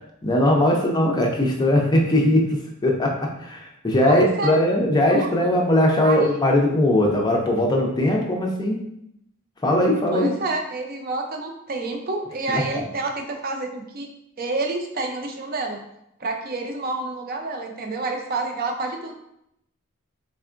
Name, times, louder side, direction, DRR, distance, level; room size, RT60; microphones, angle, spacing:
voice 1, 0.2-2.5 2.8-8.8 9.6-10.3 12.5-12.6, left 1 dB, 20° left, 0 dB, 0.5 m, -20 dB
voice 2, 4.1-4.6 5.1-5.5 6.0-6.4 10.1-14.1 14.4-15.8 16.2-19.1, right 3 dB, 45° right, 3 dB, 0.5 m, -28 dB
3.6 x 3.4 x 2.4 m, 0.78 s
head